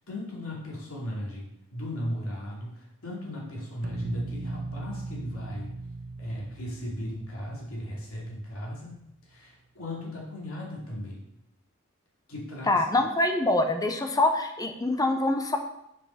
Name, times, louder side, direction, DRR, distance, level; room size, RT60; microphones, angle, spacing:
voice 1, 0.1-5.7 6.2-11.2 12.3-12.8, left 1 dB, 75° left, -3 dB, 2.6 m, -37 dB
sound 1, 3.8-8.7, right 3 dB, 45° right, 0.5 m, -39 dB
voice 2, 12.7-15.6, left 2 dB, 15° left, 6 dB, 0.7 m, -25 dB
7.2 x 5.2 x 5.6 m, 0.81 s
head